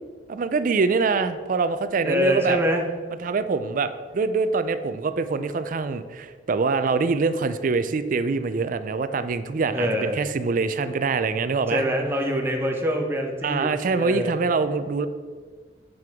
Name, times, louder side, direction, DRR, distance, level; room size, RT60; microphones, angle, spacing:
voice 1, 0.3-2.6 3.2-11.8 13.4-15.1, right 4 dB, 45° right, 11 dB, 0.4 m, -24 dB
voice 2, 2.0-2.8 9.7-10.2 11.7-14.4, equal, 15° right, 1 dB, 0.9 m, -25 dB
7.7 x 7.6 x 3.6 m, 1.5 s
head